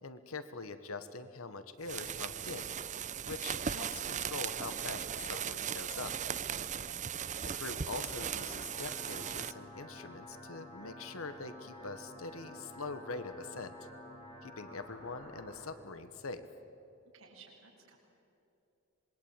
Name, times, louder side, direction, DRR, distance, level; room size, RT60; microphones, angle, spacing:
voice 1, 0.0-2.7 3.2-6.1 7.4-13.7 14.4-16.5, left 3 dB, 75° left, 11 dB, 1.3 m, -43 dB
sound 1, 1.8-9.5, right 8 dB, 35° right, 0.6 m, -38 dB
sound 2, 7.7-15.7, left 1 dB, 25° left, 5.1 m, -51 dB
voice 2, 17.1-18.0, right 5 dB, 80° right, -3 dB, 6.7 m, -56 dB
26.0 x 22.0 x 8.9 m, 2.9 s
head